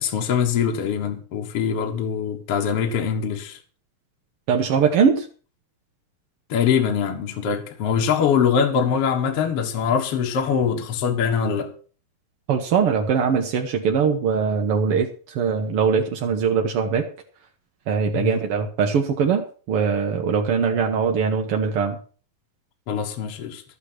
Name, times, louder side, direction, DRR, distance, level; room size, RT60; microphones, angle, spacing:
voice 1, 0.0-3.6 6.5-11.7 18.1-18.4 22.9-23.6, left 7 dB, 50° left, 2.0 m, -23 dB
voice 2, 4.5-5.2 12.5-15.1 15.3-17.0 17.9-22.0, right 6 dB, 65° right, 1.5 m, -21 dB
12.5 x 8.4 x 6.0 m
omnidirectional pair, 4.1 m